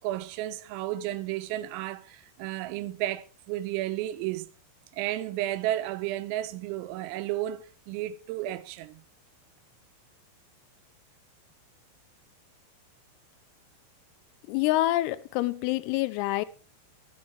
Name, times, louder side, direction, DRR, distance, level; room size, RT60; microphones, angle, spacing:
voice 1, 0.0-4.5 4.9-9.0, right 14 dB, 85° right, 3.4 m, -32 dB
voice 2, 14.5-16.5, left 16 dB, 90° left, 3.4 m, -26 dB
22.0 x 8.5 x 3.4 m
omnidirectional pair, 5.9 m